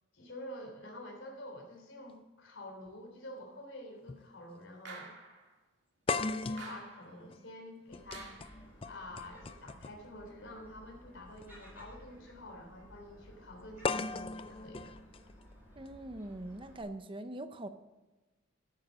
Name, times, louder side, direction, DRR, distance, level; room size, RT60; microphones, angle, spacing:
voice 1, 0.1-5.1 6.2-8.4 8.8-15.0, left 1 dB, 70° left, 2 dB, 3.5 m, -48 dB
sound 1, 2.9-3.0 4.1-4.3 4.6-4.7 6.1-10.1 11.3-11.5 13.8-15.9, left 4 dB, 25° left, 0.4 m, -38 dB
sound 2, 4.8-5.5 6.6-7.2 8.1-8.6, right 4 dB, 60° right, 2.3 m, -49 dB
Gull seagull, 7.9-16.8, equal, 10° right, 4.3 m, -56 dB
voice 2, 15.7-17.7, right 1 dB, 25° right, 9 dB, 0.8 m, -42 dB
13.0 x 9.2 x 5.1 m, 1.1 s
head